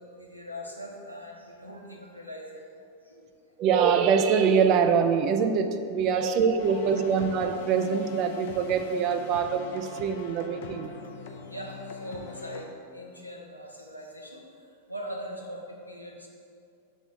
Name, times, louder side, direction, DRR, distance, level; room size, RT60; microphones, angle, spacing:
voice 1, 0.0-3.6 6.2-6.3 11.5-12.7 12.9-16.3, equal, 90° left, -1 dB, 0.9 m, -41 dB
voice 2, 3.6-10.9, right 6 dB, 40° right, 8 dB, 0.5 m, -24 dB
sound 1, 6.6-12.6, left 4 dB, 55° left, 0.6 m, -43 dB
6.0 x 3.8 x 6.1 m, 2.4 s
figure-of-eight pair, 90°, 0 cm